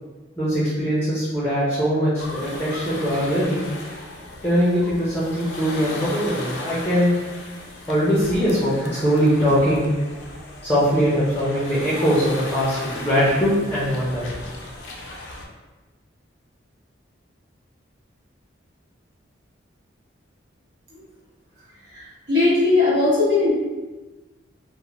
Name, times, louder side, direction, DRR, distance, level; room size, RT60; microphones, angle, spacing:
voice 1, 0.4-3.6 4.4-7.1 7.9-9.9 10.6-14.3, equal, 10° left, -9 dB, 0.5 m, -21 dB
sound 1, 2.2-15.5, left 2 dB, 75° left, 0.4 m, -36 dB
voice 2, 21.9-23.5, left 3 dB, 65° right, -10 dB, 1.1 m, -19 dB
2.5 x 2.0 x 2.9 m, 1.2 s
head